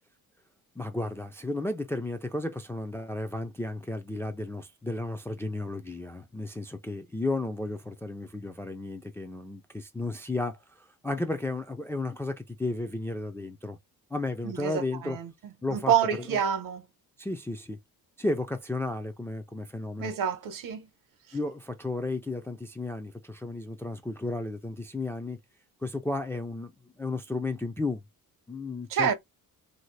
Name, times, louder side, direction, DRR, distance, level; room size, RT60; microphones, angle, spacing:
voice 1, 0.8-13.8 14.1-15.2 15.6-16.4 17.2-17.8 18.2-20.1 21.3-25.4 25.8-26.7 27.0-28.0 28.5-29.1, left 2 dB, 5° left, 0.3 m, -33 dB
voice 2, 14.4-15.3 15.7-16.8 20.0-20.9 28.9-29.1, right 8 dB, 65° right, 0.9 m, -27 dB
2.8 x 2.7 x 3.1 m
cardioid pair, 125°, 36 cm